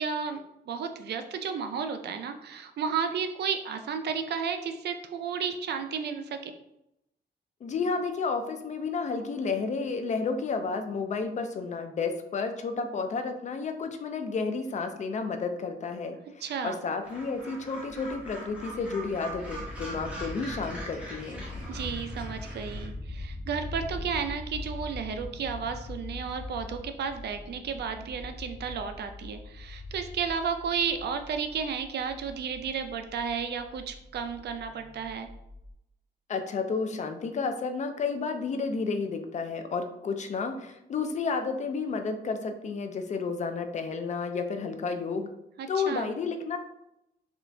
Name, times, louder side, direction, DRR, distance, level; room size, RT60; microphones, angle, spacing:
voice 1, 0.0-6.5 16.4-16.8 21.7-35.3 45.6-46.1, right 6 dB, 70° right, 7 dB, 0.4 m, -33 dB
voice 2, 7.6-21.4 36.3-45.3 45.7-46.6, left 4 dB, 40° left, 7 dB, 0.4 m, -31 dB
Gull seagull, 17.0-22.9, right 1 dB, 5° right, 0.8 m, -42 dB
sound 1, 17.9-35.7, left 2 dB, 25° right, 1.4 m, -42 dB
3.8 x 2.4 x 3.2 m, 0.82 s
wide cardioid pair, 170°, 18 cm